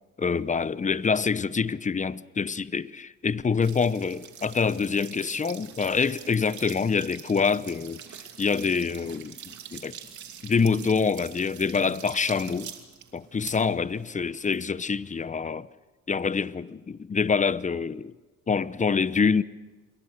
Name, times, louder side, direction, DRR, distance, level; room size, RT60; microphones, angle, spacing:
voice 1, 0.2-8.0 8.4-10.0 10.4-12.7 13.1-15.7 16.1-18.1 18.5-19.4, left 5 dB, 25° left, 0.8 m, -26 dB
sound 1, 3.6-15.3, right 9 dB, 70° right, 2.8 m, -45 dB
28.0 x 22.0 x 6.7 m
cardioid pair, 90°, 30 cm